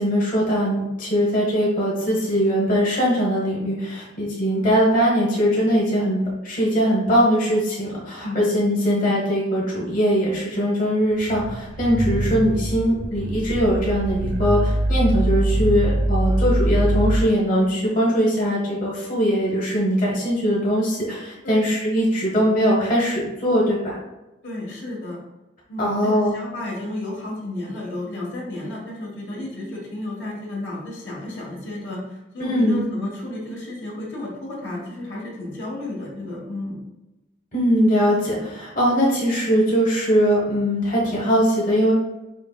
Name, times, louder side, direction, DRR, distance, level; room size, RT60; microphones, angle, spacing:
voice 1, 0.0-24.0 25.8-26.3 32.4-32.9 37.5-41.9, equal, 45° left, -5 dB, 1.0 m, -21 dB
voice 2, 4.6-4.9 8.2-8.4 8.8-8.9 12.0-12.2 21.4-21.7 24.4-25.2 25.7-36.8, left 2 dB, 75° left, -3 dB, 1.2 m, -32 dB
sound 1, 11.2-17.3, right 1 dB, 80° right, 0.7 m, -23 dB
5.1 x 3.0 x 2.3 m, 1.0 s
head